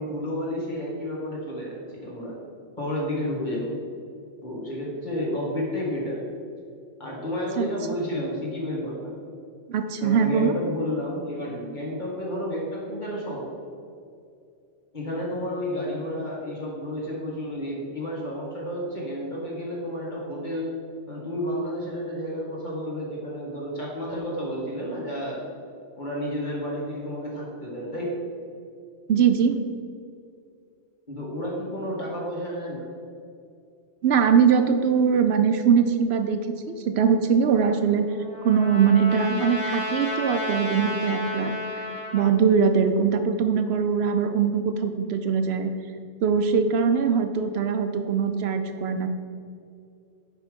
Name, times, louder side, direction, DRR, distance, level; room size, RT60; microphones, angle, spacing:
voice 1, 0.0-2.4 2.8-3.8 4.4-6.2 7.0-9.1 10.0-13.5 14.9-20.7 21.1-25.5 26.0-28.1 31.1-32.9, equal, 40° left, -4 dB, 1.9 m, -31 dB
voice 2, 9.7-10.5 29.1-29.6 34.0-38.1 38.4-41.8 42.1-45.7 46.2-49.1, right 6 dB, 70° right, 8 dB, 0.8 m, -22 dB
Trumpet, 37.6-42.3, left 2 dB, 85° left, 2.3 m, -32 dB
9.9 x 3.6 x 5.1 m, 2.4 s
omnidirectional pair, 1.2 m